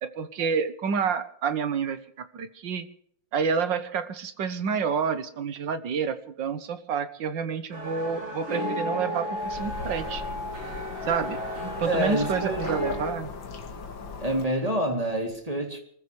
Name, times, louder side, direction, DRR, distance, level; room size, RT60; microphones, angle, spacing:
voice 1, 0.0-2.9 3.3-10.2 11.0-11.4 11.8-13.3, right 6 dB, 70° right, 11 dB, 2.0 m, -29 dB
sound 1, 7.7-13.1, equal, 85° right, 8.5 m, -33 dB
sound 2, 9.4-14.5, left 4 dB, 70° left, 2.5 m, -38 dB
voice 2, 11.8-12.7 14.2-15.8, right 1 dB, 20° right, 2 dB, 3.1 m, -27 dB
24.5 x 15.0 x 3.4 m, 0.64 s
omnidirectional pair, 2.1 m